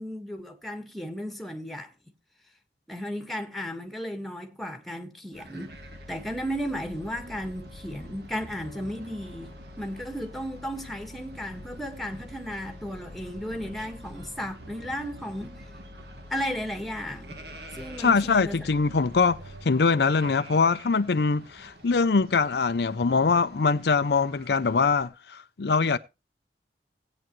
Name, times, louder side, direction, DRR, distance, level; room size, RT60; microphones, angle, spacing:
voice 1, 0.0-1.9 2.9-5.8 6.1-15.5 16.3-17.4 17.7-18.7, equal, ahead, 1.5 m, -34 dB
sound 1, 5.3-25.1, right 1 dB, 70° right, 1.8 m, -50 dB
sound 2, 5.7-19.7, left 1 dB, 90° right, 2.8 m, -46 dB
voice 2, 18.0-26.0, left 4 dB, 65° left, 0.5 m, -23 dB
17.5 x 8.8 x 3.0 m
head